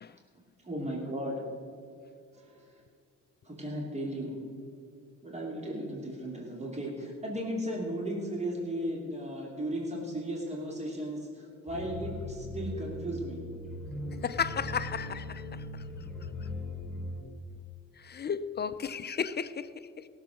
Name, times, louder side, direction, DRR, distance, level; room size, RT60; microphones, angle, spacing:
voice 1, 0.6-1.3 2.3-2.7 3.4-4.4 5.2-13.4, right 1 dB, 20° right, -1 dB, 2.6 m, -35 dB
sound 1, 11.7-17.2, left 1 dB, ahead, 4.0 m, -39 dB
voice 2, 14.2-15.8 18.0-20.1, left 6 dB, 35° left, 13 dB, 0.5 m, -34 dB
17.0 x 7.1 x 6.2 m, 2.4 s
cardioid pair, 90°, 30 cm